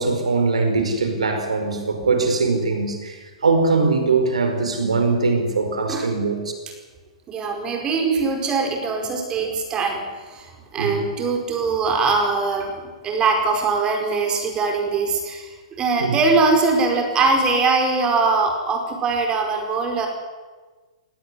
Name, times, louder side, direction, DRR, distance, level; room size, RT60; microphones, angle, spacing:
voice 1, 0.0-6.4 10.8-11.0 16.0-16.2, right 3 dB, 80° right, 6 dB, 5.0 m, -21 dB
voice 2, 7.3-20.1, right 4 dB, 25° right, 3 dB, 4.8 m, -22 dB
19.0 x 17.0 x 9.9 m, 1.3 s
hypercardioid pair, 115°, 3 cm